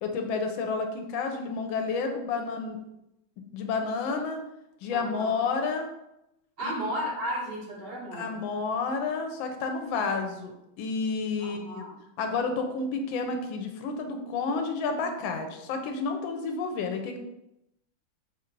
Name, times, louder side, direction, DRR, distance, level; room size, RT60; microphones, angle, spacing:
voice 1, 0.0-2.8 3.5-4.4 4.8-5.9 6.6-6.7 8.1-11.8 12.2-17.2, left 4 dB, 80° left, 5 dB, 1.4 m, -30 dB
voice 2, 4.9-5.4 6.6-8.4 11.4-12.0, equal, 60° right, -3 dB, 0.6 m, -34 dB
4.2 x 2.4 x 4.5 m, 0.87 s
omnidirectional pair, 2.1 m